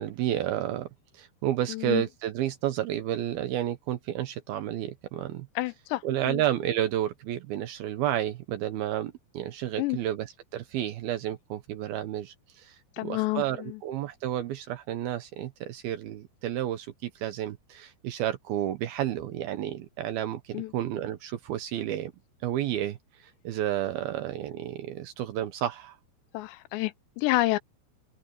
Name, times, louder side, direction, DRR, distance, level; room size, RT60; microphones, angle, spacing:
voice 1, 0.0-5.5 6.0-22.1 22.4-26.0, right 12 dB, 70° right, 2.4 m, -31 dB
voice 2, 1.7-2.0 5.6-6.0 6.3-6.4 9.8-10.0 13.0-13.8 20.5-20.7 26.3-27.6, left 19 dB, 80° left, 2.9 m, -29 dB
open air
omnidirectional pair, 5.2 m